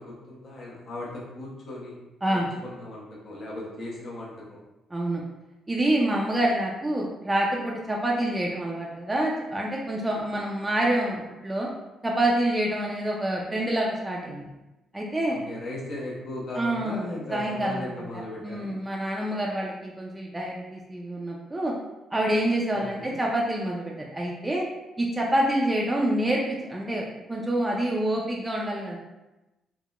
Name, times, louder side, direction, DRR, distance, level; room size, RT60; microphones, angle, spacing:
voice 1, 0.0-2.0 2.3-4.6 15.5-18.8 22.7-23.2, left 1 dB, 55° left, -5 dB, 0.7 m, -37 dB
voice 2, 4.9-5.2 5.7-11.7 12.0-14.5 14.9-15.4 16.6-21.7 22.1-24.7 25.0-29.0, right 1 dB, 15° right, -2 dB, 0.4 m, -27 dB
3.5 x 2.1 x 2.3 m, 1.0 s
cardioid pair, 90°, 0 cm